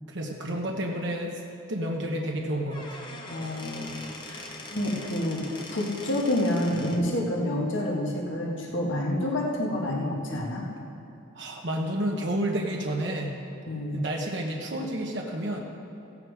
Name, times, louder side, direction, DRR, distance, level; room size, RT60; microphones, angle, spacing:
voice 1, 0.1-1.4 1.7-3.0 11.3-13.4 13.9-15.6, right 1 dB, 55° right, 0 dB, 1.1 m, -30 dB
Squeak / Wood, 2.5-7.1, left 2 dB, 20° left, 1.2 m, -42 dB
voice 2, 3.3-4.4 4.7-5.4 5.7-10.6 13.7-14.0, left 1 dB, 65° left, -2 dB, 1.8 m, -28 dB
15.5 x 8.8 x 4.8 m, 2.9 s
head